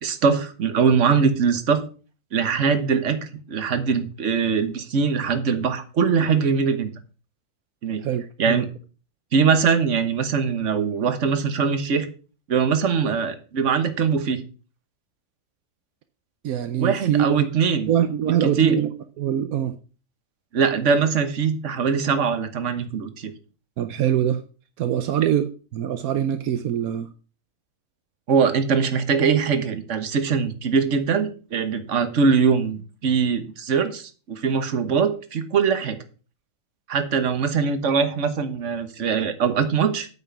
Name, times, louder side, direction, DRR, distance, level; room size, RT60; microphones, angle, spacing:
voice 1, 0.0-1.8 2.3-3.2 3.5-6.9 7.8-8.0 8.4-8.7 9.3-12.1 12.5-14.4 16.8-17.9 18.4-18.8 20.5-23.3 28.3-36.0 36.9-40.1, right 6 dB, 55° right, 10 dB, 1.5 m, -22 dB
voice 2, 8.0-8.6 16.4-17.5 17.9-18.9 19.2-19.7 23.8-24.4 24.8-27.1, right 10 dB, 80° right, 10 dB, 1.2 m, -23 dB
8.9 x 6.3 x 5.9 m, 0.36 s
omnidirectional pair, 1.5 m